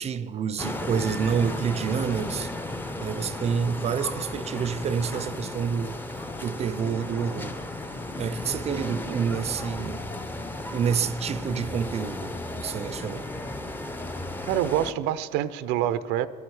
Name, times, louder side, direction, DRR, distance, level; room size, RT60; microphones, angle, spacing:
voice 1, 0.0-2.6 3.0-7.7 8.2-10.1 10.7-13.3, right 7 dB, 35° right, 0.5 m, -28 dB
sound 1, 0.6-14.9, left 2 dB, 10° left, 0.6 m, -34 dB
voice 2, 14.4-16.3, right 11 dB, 90° right, 0.5 m, -26 dB
21.0 x 11.0 x 4.8 m
cardioid pair, 115°, 19 cm